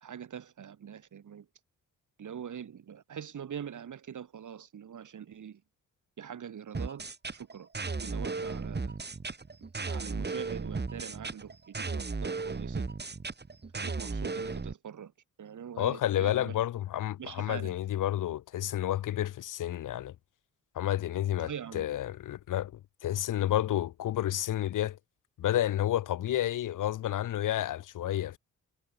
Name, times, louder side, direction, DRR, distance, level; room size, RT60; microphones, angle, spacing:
voice 1, 0.0-1.5 2.2-5.6 6.2-7.7 8.0-9.0 9.6-12.9 13.7-15.1 15.4-16.6 17.2-17.8 21.4-21.9, right 8 dB, 70° right, 3.1 m, -43 dB
sound 1, 6.7-14.7, right 4 dB, 30° right, 2.7 m, -35 dB
voice 2, 15.8-20.1 20.7-22.7 23.0-25.0 25.4-28.4, left 12 dB, 75° left, 0.7 m, -30 dB
cardioid pair, 65°, 32 cm